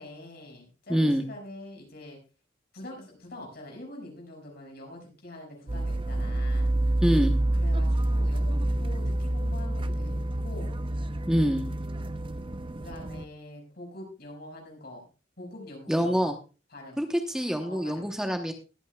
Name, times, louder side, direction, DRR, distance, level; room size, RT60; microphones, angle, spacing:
voice 1, 0.0-2.2 2.7-6.7 7.5-10.8 12.8-15.0 15.4-16.3 16.7-17.0 17.6-18.1, left 1 dB, 55° left, 1 dB, 5.5 m, -44 dB
voice 2, 0.9-1.2 7.0-7.3 11.3-11.6 15.9-16.4 17.0-18.5, equal, 5° right, 4 dB, 0.9 m, -25 dB
sound 1, 5.7-13.3, right 1 dB, 25° right, 0.5 m, -27 dB
21.0 x 9.2 x 2.3 m, 0.32 s
head